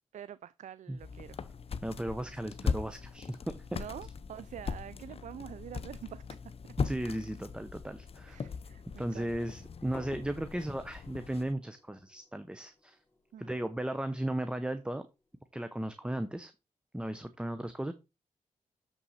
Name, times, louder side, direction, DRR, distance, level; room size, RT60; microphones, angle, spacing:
voice 1, 0.1-1.4 3.7-6.2 8.3-9.5 13.3-13.6, right 10 dB, 70° right, 0.4 m, -46 dB
sound 1, 1.0-11.5, left 5 dB, 50° left, 0.7 m, -39 dB
voice 2, 1.8-3.4 6.8-8.4 9.0-13.0 13.4-15.1 15.5-16.5 16.9-17.9, right 1 dB, 5° right, 0.7 m, -36 dB
sound 2, 9.9-15.6, left 2 dB, 15° left, 2.5 m, -58 dB
7.0 x 5.7 x 4.1 m
cardioid pair, 70°, 13 cm